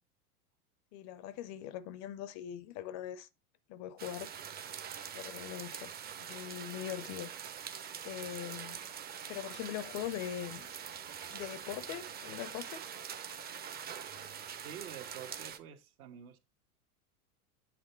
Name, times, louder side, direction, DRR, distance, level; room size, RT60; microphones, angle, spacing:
voice 1, 0.9-3.3 3.7-4.3 5.1-5.9 6.2-7.3 8.0-8.9 9.3-10.8 11.3-12.8, left 11 dB, 40° left, 0.5 m, -41 dB
sound 1, 4.0-15.6, right 8 dB, 20° right, 0.6 m, -44 dB
voice 2, 14.6-16.4, right 9 dB, 65° right, 1.4 m, -48 dB
7.7 x 3.5 x 4.3 m
hypercardioid pair, 100°, 46 cm